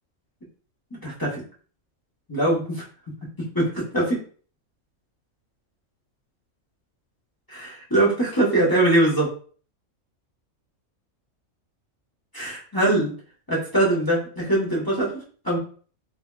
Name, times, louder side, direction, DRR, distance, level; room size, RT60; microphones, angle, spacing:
voice 1, 0.9-1.4 2.3-2.8 3.5-4.2 7.5-9.3 12.3-13.1 13.5-15.6, right 1 dB, 20° left, -6 dB, 0.8 m, -22 dB
3.4 x 2.7 x 2.2 m, 0.43 s
omnidirectional pair, 1.4 m